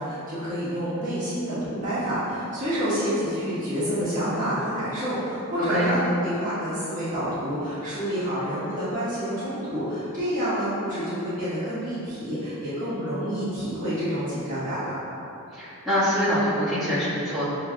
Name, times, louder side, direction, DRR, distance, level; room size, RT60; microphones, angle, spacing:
voice 1, 0.0-14.9, equal, 40° right, -13 dB, 1.2 m, -28 dB
voice 2, 15.5-17.4, equal, ahead, -15 dB, 1.3 m, -24 dB
5.8 x 3.1 x 2.2 m, 2.9 s
head